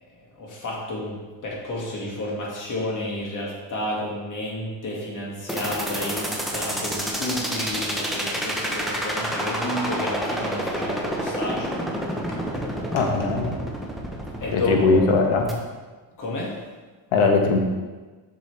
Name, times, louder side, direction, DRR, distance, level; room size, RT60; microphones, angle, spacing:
voice 1, 0.2-11.8 12.5-12.6 14.4-15.1 16.2-16.5, left 1 dB, 40° left, -3 dB, 2.2 m, -31 dB
sound 1, 5.5-15.5, right 1 dB, ahead, 0.9 m, -29 dB
voice 2, 12.9-13.5 14.5-15.5 17.1-17.6, left 3 dB, 70° left, 2 dB, 1.4 m, -20 dB
7.9 x 6.1 x 3.4 m, 1.3 s
cardioid pair, 125°, 49 cm